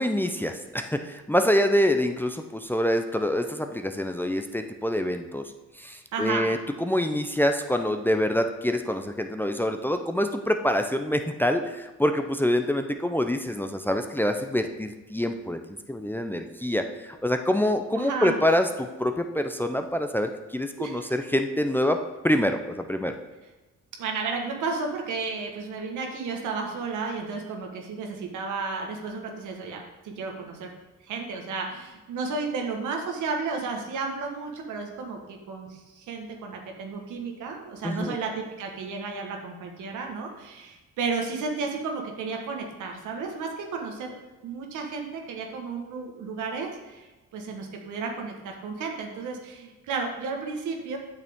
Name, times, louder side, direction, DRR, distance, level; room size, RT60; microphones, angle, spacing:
voice 1, 0.0-5.4 5.8-15.6 15.9-22.0 22.2-23.1 37.8-38.2, left 1 dB, 5° left, 6 dB, 0.5 m, -26 dB
voice 2, 6.1-6.5 17.9-18.4 20.8-21.1 24.0-30.7 31.0-44.2 44.4-47.1 47.3-51.0, right 4 dB, 80° right, 2 dB, 1.5 m, -33 dB
8.2 x 6.6 x 3.6 m, 1.1 s
cardioid pair, 90°, 30 cm